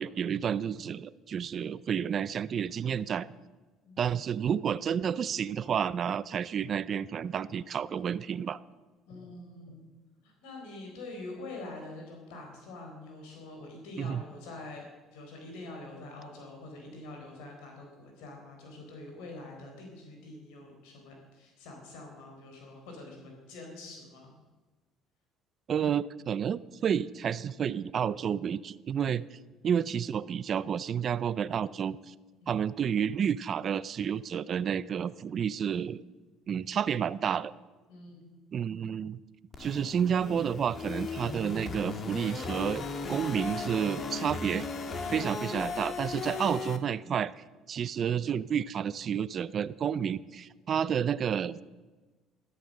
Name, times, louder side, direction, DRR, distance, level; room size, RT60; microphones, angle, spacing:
voice 1, 0.0-3.3 4.0-8.6 14.0-14.2 25.7-32.1 32.5-36.0 36.5-37.5 38.5-39.2 39.6-44.7 45.1-51.6, right 8 dB, 45° right, 16 dB, 0.5 m, -30 dB
voice 2, 9.1-9.9 10.2-14.9 15.1-24.3 32.4-32.6 37.9-38.4, left 2 dB, 90° left, 1 dB, 4.1 m, -45 dB
sound 1, 39.5-46.8, left 4 dB, 40° left, 1.6 m, -37 dB
13.5 x 13.0 x 6.5 m, 1.3 s
cardioid pair, 110°, 0 cm